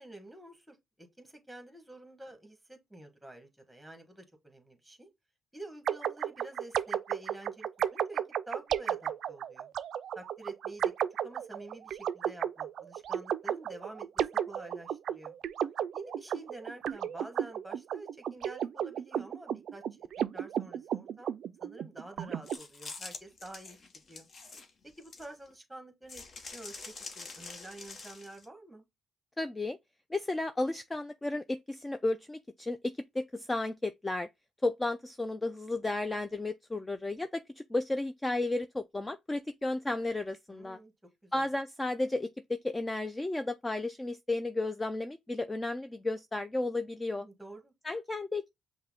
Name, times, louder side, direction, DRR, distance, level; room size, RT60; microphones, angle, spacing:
voice 1, 0.0-5.1 5.5-9.7 10.1-10.9 11.2-15.4 15.9-20.1 20.3-21.3 21.6-23.8 24.1-24.3 24.8-26.2 26.5-28.8 40.5-40.9 41.2-41.5 47.2-47.7, right 2 dB, 5° right, 1.3 m, -49 dB
sound 1, 5.9-22.6, right 9 dB, 70° right, 0.3 m, -34 dB
sound 2, 22.5-25.5 26.1-28.5, left 4 dB, 50° left, 0.9 m, -46 dB
voice 2, 29.4-29.8 30.1-34.3 34.6-40.8 41.3-47.3 47.8-48.5, left 2 dB, 15° left, 0.3 m, -33 dB
5.6 x 2.1 x 3.5 m
cardioid pair, 90°, 0 cm